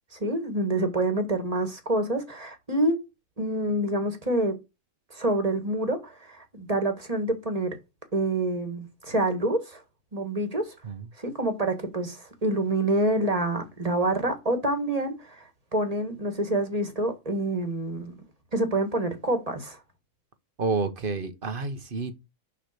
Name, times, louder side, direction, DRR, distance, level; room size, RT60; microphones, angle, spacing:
voice 1, 0.1-3.0 3.4-4.6 5.1-7.8 8.1-9.8 10.1-10.7 11.2-18.1 18.5-19.8, right 1 dB, 25° right, 1.9 m, -27 dB
voice 2, 20.6-22.1, right 4 dB, 40° right, 1.2 m, -29 dB
6.7 x 5.7 x 6.7 m
omnidirectional pair, 1.4 m